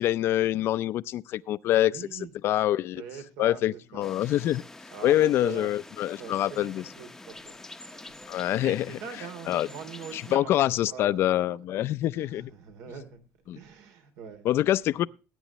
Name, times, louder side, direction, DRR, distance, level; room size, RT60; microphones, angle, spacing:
voice 1, 0.0-1.9 2.4-3.0 3.4-4.6 5.0-6.8 8.3-8.8 9.5-9.7 10.1-12.5 13.5-13.6 14.4-15.1, left 13 dB, 55° left, 0.5 m, -25 dB
voice 2, 1.7-2.5 3.0-4.1 4.9-5.7 6.2-6.7 6.9-8.3 8.6-11.6 12.1-14.5 15.0-15.1, right 6 dB, 80° right, 3.1 m, -43 dB
sound 1, 4.0-10.4, left 2 dB, 10° left, 0.7 m, -46 dB
19.0 x 9.2 x 3.0 m
cardioid pair, 140°, 5 cm